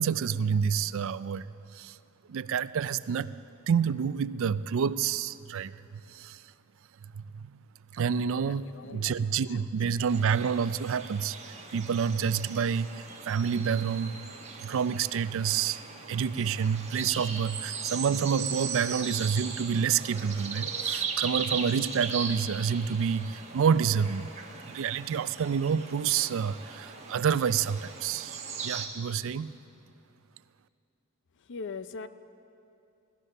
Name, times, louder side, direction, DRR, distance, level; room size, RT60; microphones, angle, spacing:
voice 1, 0.0-1.5 1.7-2.0 2.3-3.3 3.7-6.5 7.1-7.6 7.9-14.3 14.6-24.3 24.7-29.5, right 7 dB, 65° right, 16 dB, 0.4 m, -28 dB
voice 2, 8.5-9.1 9.5-9.6 31.5-32.1, left 4 dB, 55° left, 12 dB, 0.5 m, -40 dB
sound 1, 10.1-28.9, right 6 dB, 30° right, 1.4 m, -38 dB
16.5 x 13.0 x 6.6 m, 2.8 s
head